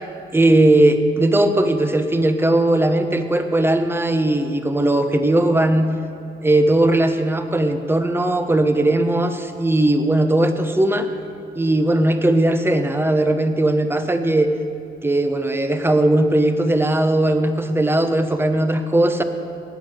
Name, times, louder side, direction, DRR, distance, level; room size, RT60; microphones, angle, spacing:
voice 1, 0.3-5.9 6.4-11.1 11.6-14.5 15.0-19.2, right 1 dB, 10° right, 7 dB, 1.0 m, -18 dB
17.5 x 7.5 x 6.4 m, 2.6 s
cardioid pair, 90°, 20 cm